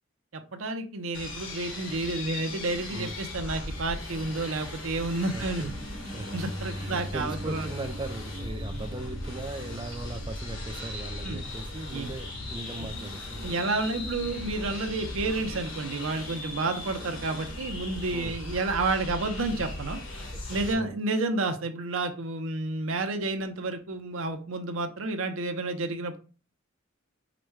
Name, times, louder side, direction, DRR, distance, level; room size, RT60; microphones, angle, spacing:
voice 1, 0.3-5.7 6.3-7.7 11.2-11.4 11.9-12.1 12.8-12.9 13.4-20.0 20.5-26.2, right 2 dB, 90° right, 0.7 m, -30 dB
sound 1, 1.1-20.7, left 2 dB, 75° left, 1.3 m, -38 dB
sound 2, 5.0-18.0, right 1 dB, 65° right, 1.0 m, -50 dB
voice 2, 5.3-5.7 6.0-6.3 6.7-13.5 17.9-18.4 20.3-21.0, right 2 dB, 25° right, 0.4 m, -39 dB
Bass guitar, 6.3-12.5, left 1 dB, 45° left, 0.6 m, -42 dB
5.0 x 2.1 x 4.6 m
head